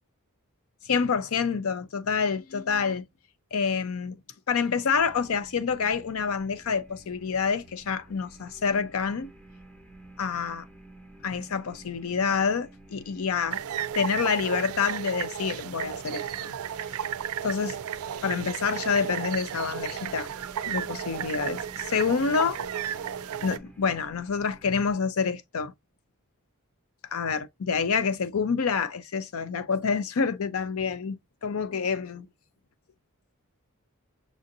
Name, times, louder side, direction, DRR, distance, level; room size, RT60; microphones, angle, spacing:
voice 1, 0.9-3.0 3.5-4.2 4.5-9.3 10.2-10.7 11.2-13.6 13.9-16.5 17.4-17.8 18.2-20.3 20.7-22.6 23.4-25.7 27.1-31.2 31.4-32.3, left 5 dB, 70° left, 0.5 m, -27 dB
sound 1, 4.9-24.9, right 1 dB, 5° left, 0.9 m, -52 dB
sound 2, 13.5-23.6, right 9 dB, 75° right, 0.4 m, -34 dB
6.2 x 2.6 x 2.6 m
head